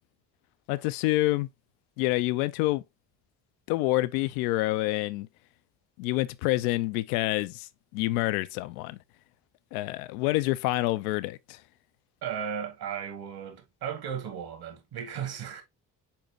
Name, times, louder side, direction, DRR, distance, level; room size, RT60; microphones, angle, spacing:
voice 1, 0.7-1.5 2.0-2.8 3.7-5.3 6.0-7.7 7.9-9.0 9.7-11.6, left 18 dB, 60° left, 0.5 m, -27 dB
voice 2, 12.2-15.6, right 8 dB, 45° right, 1.5 m, -35 dB
4.4 x 4.2 x 2.8 m
figure-of-eight pair, 40°, 50 cm